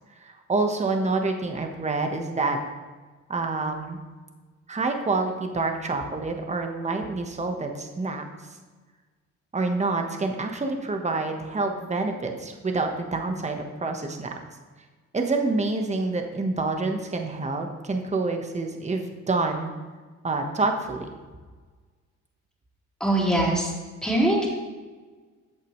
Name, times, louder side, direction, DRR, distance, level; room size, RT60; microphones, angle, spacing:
voice 1, 0.2-2.6 3.3-4.0 4.7-8.3 9.5-14.3 15.1-19.7 20.2-21.1, right 3 dB, 25° right, 4 dB, 1.3 m, -27 dB
voice 2, 23.0-23.7 24.0-24.5, right 1 dB, ahead, -4 dB, 3.6 m, -22 dB
13.5 x 8.3 x 3.2 m, 1.4 s
cardioid pair, 90°, 30 cm